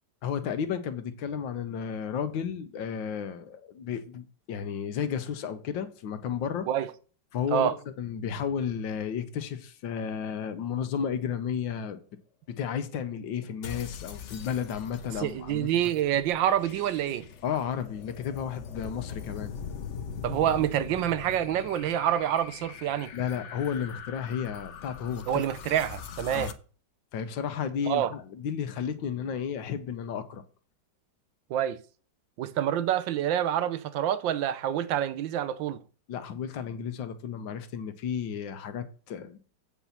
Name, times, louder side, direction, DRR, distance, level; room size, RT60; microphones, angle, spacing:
voice 1, 0.2-6.7 7.3-12.0 12.5-15.7 17.4-19.5 23.1-25.4 26.3-26.5 27.1-30.4 36.1-39.4, left 7 dB, 85° left, 1.7 m, -33 dB
sound 1, 13.6-26.5, left 7 dB, 55° left, 0.9 m, -42 dB
voice 2, 15.2-17.3 20.2-23.1 25.3-26.5 27.9-28.1 31.5-31.8 32.4-35.8, right 11 dB, 85° right, 1.5 m, -27 dB
8.5 x 5.4 x 5.7 m
omnidirectional pair, 2.0 m